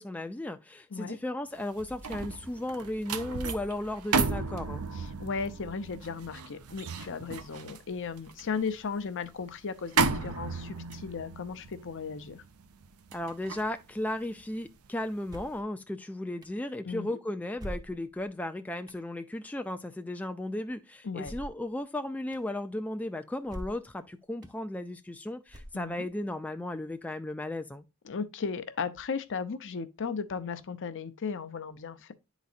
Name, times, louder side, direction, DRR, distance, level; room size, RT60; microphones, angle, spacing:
voice 1, 0.0-4.8 13.1-27.8, left 1 dB, 5° left, 0.3 m, -35 dB
sound 1, 1.6-14.9 15.3-15.5, right 4 dB, 75° right, 0.6 m, -34 dB
voice 2, 4.9-12.4 16.8-17.2 21.0-21.3 25.7-26.1 28.0-32.1, left 5 dB, 60° left, 0.6 m, -36 dB
sound 2, 15.3-15.7 16.4-16.5 17.6-18.3 18.9-19.0 21.2-21.7 22.3-22.4 23.5-23.9 24.4-24.5 25.5-26.1, equal, 15° right, 0.7 m, -42 dB
10.5 x 4.1 x 2.4 m
head